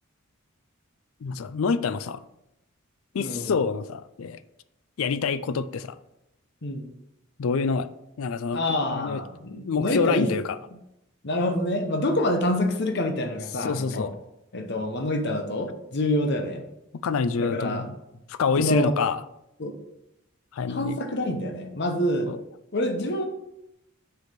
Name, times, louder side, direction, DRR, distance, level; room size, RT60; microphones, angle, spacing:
voice 1, 1.2-2.2 3.1-4.4 5.0-6.0 7.4-7.9 8.2-8.6 8.9-9.2 9.5-10.6 13.6-14.1 17.0-18.0 18.3-19.2 20.5-21.0 22.3-22.4, left 5 dB, 75° left, 14 dB, 0.4 m, -27 dB
voice 2, 3.2-3.5 6.6-6.9 8.5-10.3 11.2-14.1 14.5-16.6 17.4-17.9 18.6-18.9 19.6-19.7 20.7-22.3 22.7-23.3, left 1 dB, 50° left, 5 dB, 1.0 m, -26 dB
6.5 x 4.8 x 5.2 m, 0.86 s
head